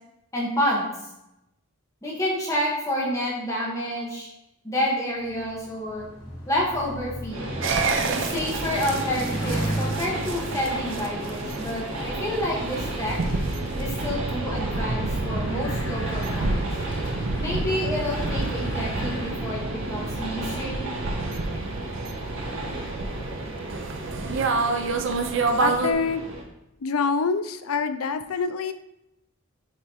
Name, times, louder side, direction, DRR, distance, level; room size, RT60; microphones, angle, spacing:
voice 1, 0.3-0.9 2.0-4.3 4.6-6.0 6.5-7.4 8.1-13.2 13.8-16.6 17.4-20.9, equal, 15° left, -4 dB, 1.5 m, -29 dB
Bicycle, 5.2-19.9, equal, 65° left, 1.8 m, -37 dB
Train, 7.3-26.4, right 1 dB, 85° right, 1.8 m, -34 dB
sound 1, 7.6-25.9, right 3 dB, 60° right, 0.6 m, -29 dB
voice 2, 25.6-26.2 26.8-28.7, left 5 dB, 90° left, 10 dB, 0.5 m, -26 dB
9.1 x 4.3 x 3.1 m, 0.86 s
head